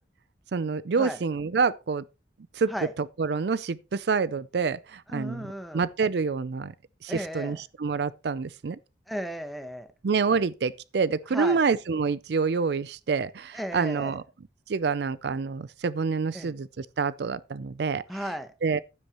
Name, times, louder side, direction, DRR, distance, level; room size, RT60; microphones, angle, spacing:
voice 1, 0.5-2.0 2.5-2.7 3.2-5.4 5.7-6.7 7.0-8.8 10.0-14.2 14.7-18.0 18.6-18.8, right 5 dB, 65° right, 0.4 m, -27 dB
voice 2, 5.1-5.8 7.1-7.6 9.1-9.9 11.3-11.6 13.5-14.2 16.3-16.6 18.1-18.5, equal, ahead, 0.9 m, -35 dB
11.5 x 10.0 x 3.0 m
head